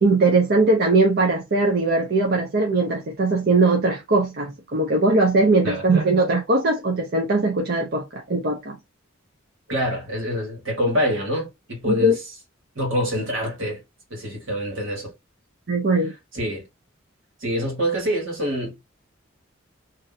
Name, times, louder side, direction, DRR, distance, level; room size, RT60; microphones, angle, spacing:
voice 1, 0.0-8.8 11.9-12.2 15.7-16.1, right 2 dB, 55° right, 0.6 m, -20 dB
voice 2, 9.7-12.1 12.7-13.8 14.1-15.1 16.3-16.7 17.4-18.8, equal, 75° right, 1.7 m, -25 dB
2.6 x 2.6 x 3.9 m
head